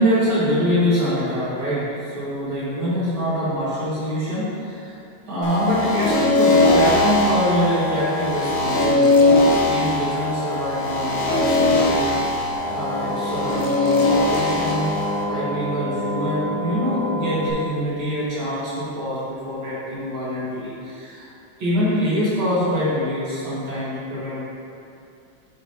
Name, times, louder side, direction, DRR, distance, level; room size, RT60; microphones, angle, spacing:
voice 1, 0.0-5.0 5.3-9.4 9.7-12.4 12.7-14.9 15.3-21.3 21.6-24.4, equal, 90° right, -10 dB, 2.4 m, -24 dB
sound 1, 5.4-15.2, left 2 dB, 85° left, 1.7 m, -20 dB
sound 2, 12.5-17.5, left 1 dB, 30° right, 0.5 m, -28 dB
9.0 x 5.3 x 2.8 m, 2.6 s
omnidirectional pair, 2.2 m